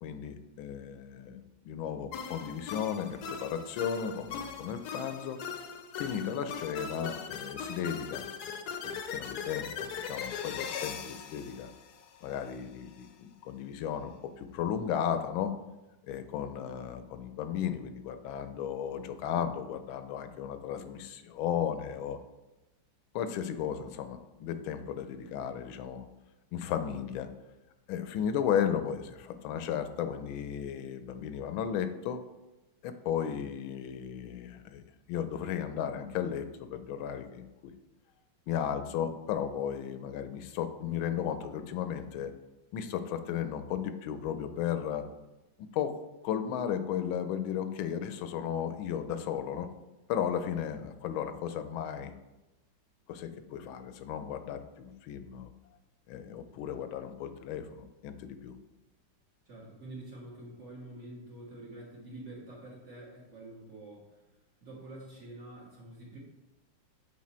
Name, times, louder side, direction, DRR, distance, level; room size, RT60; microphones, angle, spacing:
voice 1, 0.0-5.4 6.0-8.6 8.8-11.7 12.2-15.6 16.1-22.2 23.1-26.1 26.5-27.3 27.9-32.2 32.8-34.8 35.1-37.7 38.5-42.3 42.7-45.1 45.7-46.0 46.2-49.7 50.1-52.1 53.1-55.5 56.1-58.5, left 8 dB, 85° left, 9 dB, 1.4 m, -35 dB
sound 1, 2.1-12.5, left 6 dB, 65° left, 1.0 m, -40 dB
voice 2, 59.5-64.0 64.6-66.2, right 1 dB, 40° right, -4 dB, 1.9 m, -47 dB
7.4 x 4.6 x 4.3 m, 1.0 s
omnidirectional pair, 2.1 m